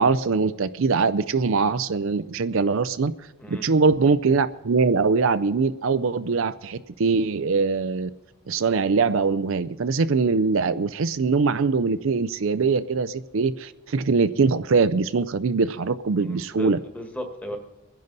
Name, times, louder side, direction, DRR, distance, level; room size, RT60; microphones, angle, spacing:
voice 1, 0.0-3.1 3.5-8.1 8.5-16.8, right 4 dB, 60° right, 13 dB, 0.5 m, -22 dB
voice 2, 3.4-3.7 16.2-17.6, equal, 5° left, 4 dB, 1.6 m, -36 dB
23.5 x 10.5 x 4.0 m, 1.1 s
head